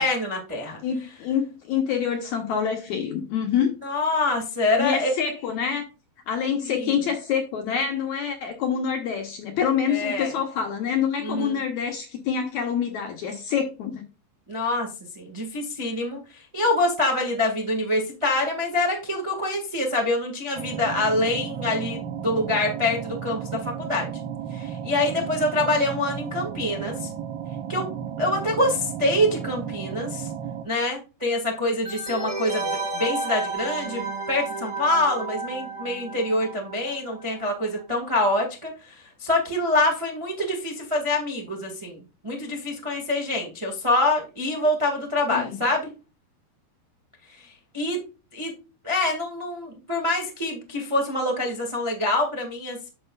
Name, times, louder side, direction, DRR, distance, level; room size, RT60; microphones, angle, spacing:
voice 1, 0.0-0.8 3.8-5.1 6.6-6.9 9.9-10.3 11.2-11.6 14.5-14.9 15.1-24.1 24.5-27.1 27.7-27.9 28.2-30.3 30.6-45.9 47.3-48.0 48.3-48.5 48.8-52.9, left 2 dB, 30° right, 0.5 m, -25 dB
voice 2, 0.8-3.8 4.8-5.9 6.3-14.0 45.3-45.6, left 7 dB, 70° left, 1.9 m, -26 dB
sound 1, 20.6-30.7, right 8 dB, 85° right, 2.9 m, -34 dB
sound 2, 31.8-37.3 37.6-37.7, right 3 dB, 15° right, 1.5 m, -32 dB
10.0 x 6.5 x 2.4 m
omnidirectional pair, 4.5 m